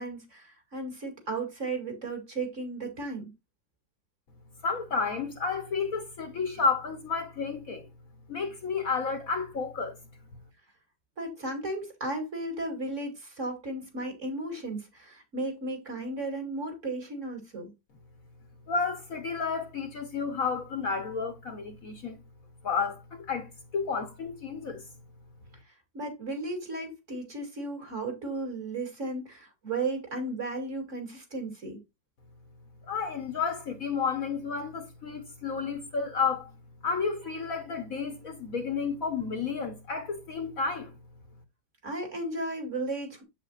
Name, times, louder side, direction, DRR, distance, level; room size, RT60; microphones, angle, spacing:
voice 1, 0.0-3.3 11.2-17.7 25.9-31.8 41.8-43.2, right 2 dB, 40° right, 2.8 m, -35 dB
voice 2, 4.6-7.9 8.3-10.0 18.7-22.2 22.6-23.5 23.7-24.8 32.8-36.5 36.8-40.9, left 5 dB, 55° left, 1.3 m, -31 dB
7.8 x 7.5 x 2.4 m
omnidirectional pair, 2.0 m